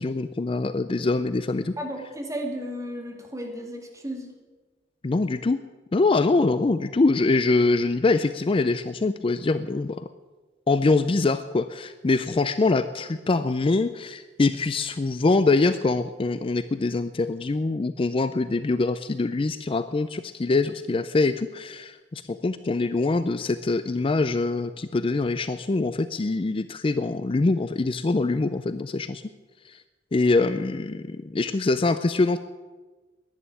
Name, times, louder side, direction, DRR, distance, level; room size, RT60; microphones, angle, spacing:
voice 1, 0.0-1.7 5.0-5.6 5.9-10.0 10.7-29.2 29.7-29.8 30.1-32.4, left 3 dB, 30° left, 12 dB, 0.4 m, -24 dB
voice 2, 1.8-4.3, equal, 20° right, 1 dB, 2.4 m, -34 dB
11.0 x 10.5 x 9.0 m, 1.3 s
head